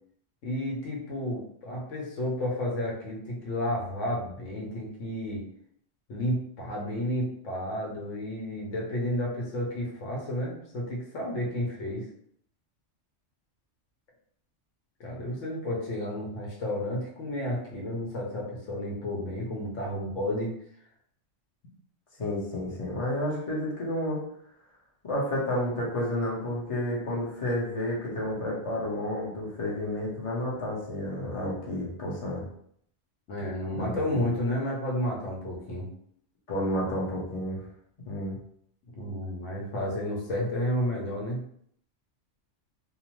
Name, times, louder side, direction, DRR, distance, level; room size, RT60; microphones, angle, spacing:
voice 1, 0.4-5.4 6.1-12.0 15.0-20.5 33.3-35.9 38.9-41.4, left 1 dB, 75° left, -2 dB, 1.1 m, -31 dB
voice 2, 22.2-24.2 25.0-32.4 33.7-34.2 36.5-37.6 38.1-38.4, left 1 dB, 30° left, -4 dB, 0.7 m, -31 dB
2.7 x 2.0 x 2.9 m, 0.67 s
omnidirectional pair, 1.3 m